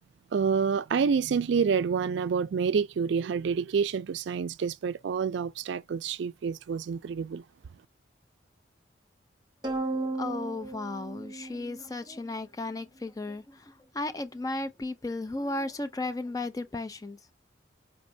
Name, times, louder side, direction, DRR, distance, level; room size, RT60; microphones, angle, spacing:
voice 1, 0.3-7.4, right 6 dB, 75° right, 0.3 m, -28 dB
sound 1, 9.6-12.2, right 2 dB, 25° right, 1.0 m, -34 dB
voice 2, 9.9-17.2, left 2 dB, 20° left, 0.4 m, -35 dB
4.4 x 3.1 x 2.6 m
head